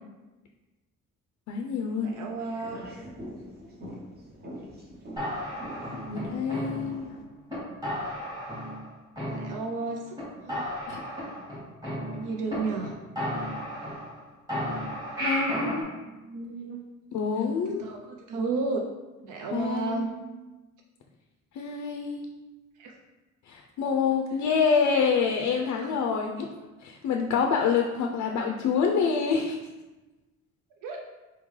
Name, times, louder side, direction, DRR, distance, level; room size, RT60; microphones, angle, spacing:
voice 1, 1.5-2.1 5.9-7.1 10.9-11.0 15.2-15.8 17.1-17.9 19.5-20.2 21.5-22.3 23.5-26.5 26.8-29.6, left 6 dB, 70° left, 2 dB, 0.4 m, -27 dB
sound 1, 2.0-7.2, equal, 30° right, 0.7 m, -44 dB
voice 2, 2.0-2.9 9.3-10.7 12.1-12.9 16.1-16.8 17.4-18.8 19.2-20.1 22.8-22.9 25.8-25.9 26.4-26.5 30.8-31.0, right 3 dB, 85° right, 2 dB, 0.6 m, -33 dB
sound 2, 5.2-7.1 7.5-7.6 7.8-8.9 9.2-9.9 10.2-10.3 10.5-12.5 12.8-12.9 13.2-14.2 14.5-15.8, equal, 15° right, 1.5 m, -33 dB
4.2 x 3.6 x 3.1 m, 1.1 s
cardioid pair, 160°, 30 cm